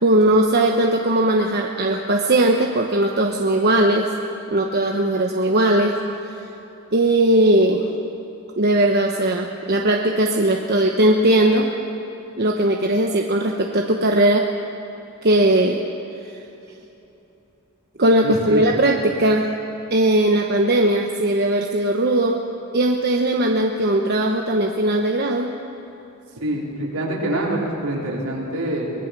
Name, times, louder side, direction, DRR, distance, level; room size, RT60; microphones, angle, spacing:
voice 1, 0.0-4.1 4.5-5.9 6.9-7.9 8.6-11.7 12.4-14.5 15.2-15.8 18.0-19.5 19.9-22.4 22.7-25.5, right 1 dB, 45° right, 1 dB, 1.1 m, -18 dB
voice 2, 18.2-18.7 26.4-28.9, right 1 dB, 75° right, -3 dB, 4.5 m, -25 dB
24.0 x 18.0 x 6.2 m, 3.0 s
head